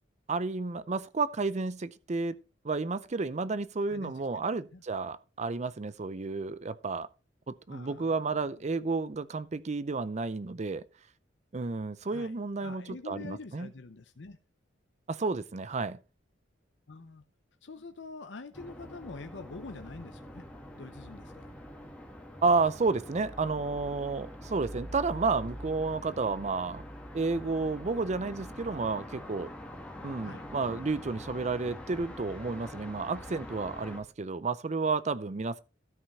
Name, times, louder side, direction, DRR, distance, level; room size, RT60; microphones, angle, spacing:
voice 1, 0.3-2.4 2.6-7.1 7.5-10.8 11.5-13.7 15.1-16.0 22.4-26.8 27.1-29.5 30.0-35.6, right 4 dB, 40° right, 0.5 m, -31 dB
voice 2, 3.9-4.4 4.7-4.8 7.7-8.5 12.1-12.3 12.6-14.4 16.9-17.2 17.6-20.5 20.8-21.5 30.2-30.5, left 3 dB, 65° left, 0.7 m, -46 dB
sound 1, 18.5-34.0, equal, 5° left, 2.1 m, -44 dB
13.0 x 5.6 x 4.2 m
head